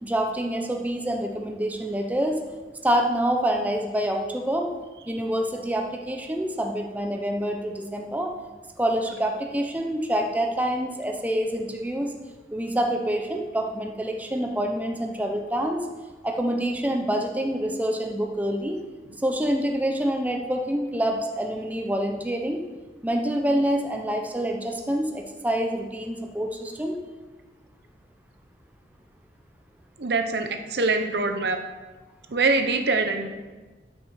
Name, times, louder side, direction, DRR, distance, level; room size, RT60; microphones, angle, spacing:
voice 1, 0.0-2.4 2.8-4.7 5.1-8.3 8.8-12.1 12.5-15.8 16.2-18.8 19.2-22.6 23.0-27.0, right 1 dB, 10° right, 2 dB, 0.7 m, -26 dB
voice 2, 30.0-31.6 32.3-33.3, right 3 dB, 65° right, 6 dB, 0.9 m, -24 dB
12.0 x 6.3 x 4.9 m, 1.3 s
head